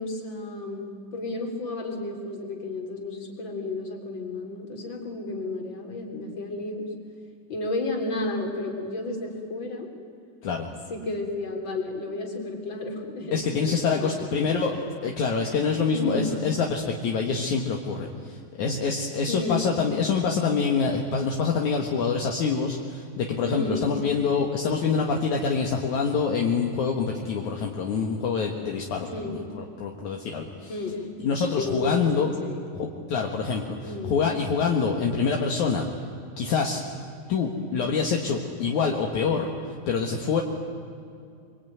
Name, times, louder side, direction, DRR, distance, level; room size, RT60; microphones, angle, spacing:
voice 1, 0.0-6.8 7.5-9.9 10.9-14.5 15.9-16.3 19.3-19.6 23.4-23.9 29.1-29.4 30.7-31.0 31.6-32.6 33.8-34.1, left 2 dB, 35° left, 2 dB, 4.1 m, -32 dB
voice 2, 10.4-10.7 13.3-30.7 31.2-32.3 32.7-35.8 36.4-36.8 37.3-39.5 39.9-40.4, left 5 dB, 65° left, 1 dB, 2.9 m, -26 dB
25.0 x 25.0 x 9.4 m, 2.5 s
omnidirectional pair, 3.9 m